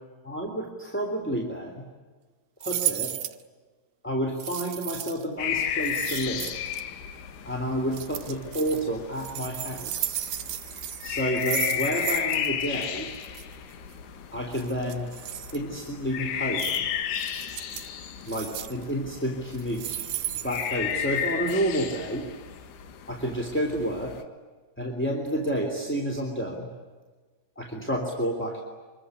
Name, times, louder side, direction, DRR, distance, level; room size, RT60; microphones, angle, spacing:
voice 1, 0.2-1.9 2.6-3.1 4.0-6.5 7.4-10.2 11.0-13.1 14.3-15.1 15.5-16.9 18.3-20.0 20.4-22.3 23.1-24.2 24.8-26.7 27.6-28.6, right 1 dB, 5° left, 1 dB, 2.5 m, -30 dB
Multiple key jingles, 2.6-3.4 4.4-5.2 5.8-6.8 7.9-8.8 9.2-12.5 12.7-12.8 13.1-13.4 14.5-15.6 16.6-16.8 17.1-17.9 18.3-18.8 19.5-21.2 21.5-21.6, right 12 dB, 65° right, 2.4 m, -34 dB
sound 1, 5.4-24.2, left 9 dB, 80° left, 3.6 m, -33 dB
26.0 x 22.5 x 9.8 m, 1.4 s
omnidirectional pair, 4.6 m